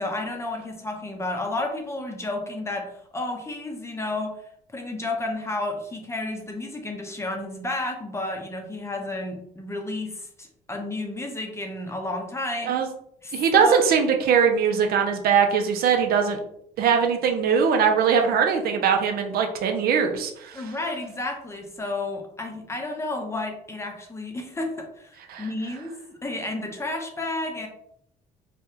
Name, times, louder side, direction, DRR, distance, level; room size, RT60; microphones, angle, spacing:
voice 1, 0.0-4.3 4.7-12.8 13.2-13.8 20.5-27.7, left 2 dB, 15° left, 2 dB, 0.6 m, -31 dB
voice 2, 13.3-16.4 16.8-20.6 25.3-25.4, right 6 dB, 65° right, 4 dB, 0.5 m, -21 dB
3.4 x 2.2 x 2.8 m, 0.71 s
cardioid pair, 110°, 17 cm